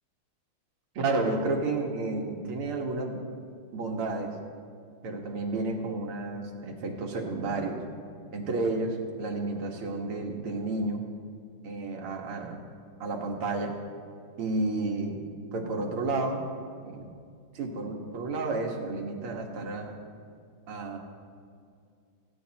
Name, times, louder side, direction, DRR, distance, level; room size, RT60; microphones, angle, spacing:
voice 1, 1.0-3.2 3.7-4.3 5.0-7.8 8.3-11.0 11.6-12.6 13.0-13.7 14.4-16.4 16.8-17.1 17.5-19.9 20.7-21.0, right 2 dB, 85° right, 1 dB, 2.4 m, -31 dB
18.5 x 16.0 x 2.9 m, 2.3 s
omnidirectional pair, 2.3 m